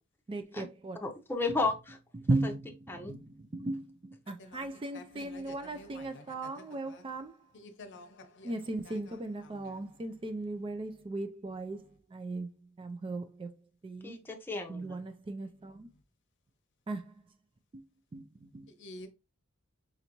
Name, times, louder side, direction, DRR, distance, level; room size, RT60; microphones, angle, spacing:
voice 1, 0.3-1.0 2.3-2.7 3.0-3.3 3.5-3.9 4.3-7.4 8.4-11.8 12.1-12.5 12.8-13.5 13.8-14.2 14.7-15.9 16.9-17.0 18.1-18.2 18.5-18.7, right 2 dB, 25° right, 0.4 m, -36 dB
voice 2, 1.0-2.0 2.4-2.5 2.9-3.2 14.0-15.0, left 3 dB, 10° left, 0.7 m, -33 dB
voice 3, 4.4-7.0 7.5-8.6 8.8-9.2 9.4-9.8 18.8-19.1, left 2 dB, 55° left, 0.7 m, -50 dB
5.2 x 2.6 x 2.9 m
head